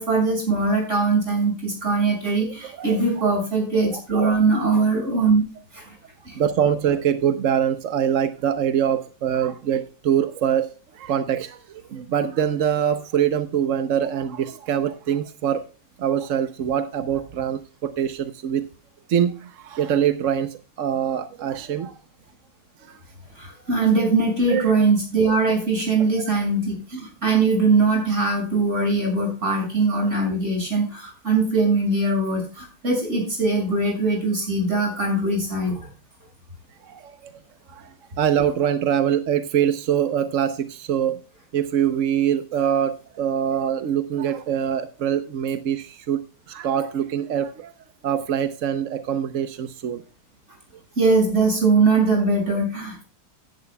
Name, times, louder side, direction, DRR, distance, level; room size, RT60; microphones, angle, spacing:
voice 1, 0.0-5.4 5.7-5.9 6.2-6.4 23.3-35.9 51.0-53.0, right 3 dB, 35° right, 0 dB, 6.5 m, -21 dB
voice 2, 2.4-3.3 3.9-4.4 6.4-15.6 16.0-18.6 19.1-22.0 22.8-23.0 24.5-24.8 26.1-26.2 36.8-37.4 37.7-41.2 41.5-46.2 46.5-47.7 48.0-50.0, right 9 dB, 55° right, 10 dB, 0.9 m, -24 dB
16.0 x 11.0 x 2.2 m, 0.34 s
omnidirectional pair, 2.0 m